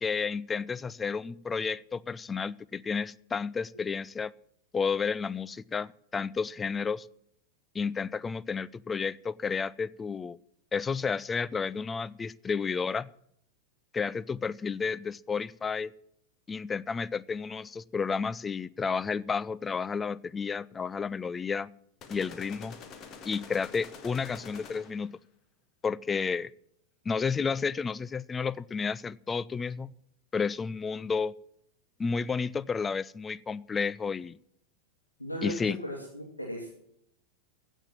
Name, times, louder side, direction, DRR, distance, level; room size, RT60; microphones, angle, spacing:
voice 1, 0.0-4.3 4.7-7.1 7.7-10.4 10.7-13.1 13.9-15.9 16.5-21.7 22.1-22.8 23.2-25.2 25.8-26.5 27.1-29.9 30.3-31.3 32.0-34.4 35.4-35.8, left 5 dB, 15° left, 0.4 m, -31 dB
sound 1, 22.0-25.2, left 6 dB, 30° left, 1.5 m, -47 dB
voice 2, 35.2-36.7, equal, 85° left, 2.8 m, -37 dB
16.0 x 7.3 x 7.5 m
figure-of-eight pair, 90°, 0 cm